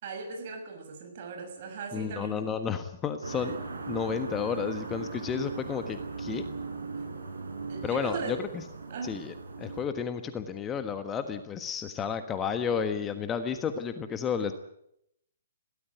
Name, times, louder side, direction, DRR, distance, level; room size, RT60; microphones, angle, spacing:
voice 1, 0.0-2.5 3.4-3.5 7.7-8.4 8.9-9.2, right 4 dB, 45° right, 5 dB, 6.6 m, -38 dB
voice 2, 1.9-3.6 3.9-6.5 7.8-8.6 9.0-14.5, left 7 dB, 15° left, 9 dB, 1.4 m, -32 dB
sound 1, 3.2-9.8, right 4 dB, 70° right, 5.4 m, -38 dB
22.0 x 17.0 x 9.2 m, 0.79 s
figure-of-eight pair, 125°, 0 cm